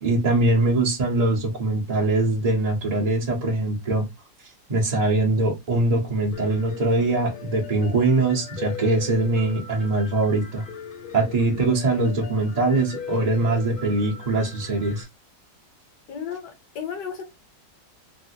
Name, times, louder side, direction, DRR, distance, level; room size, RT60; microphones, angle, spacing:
voice 1, 0.0-4.0 4.7-10.6 11.1-15.0, right 2 dB, 50° right, 0.4 m, -22 dB
Piano, 6.3-15.0, left 6 dB, 45° left, 0.7 m, -39 dB
voice 2, 16.1-17.2, left 7 dB, 75° left, 1.5 m, -33 dB
3.3 x 2.4 x 2.8 m
omnidirectional pair, 1.9 m